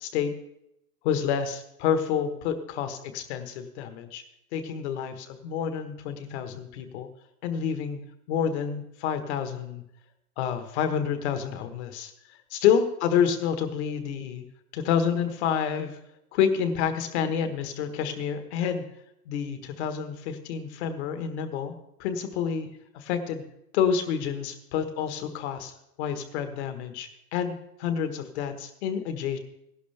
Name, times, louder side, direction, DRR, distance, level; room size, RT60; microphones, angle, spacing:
voice 1, 0.0-0.3 1.0-4.2 4.5-7.1 7.4-8.0 8.3-9.8 10.4-12.1 12.5-14.4 14.7-16.0 16.3-18.8 19.3-21.7 22.0-22.7 22.9-23.4 23.7-25.7 26.0-29.4, left 7 dB, 45° left, 9 dB, 1.4 m, -28 dB
15.5 x 11.5 x 3.4 m, 0.82 s
hypercardioid pair, 145°, 46 cm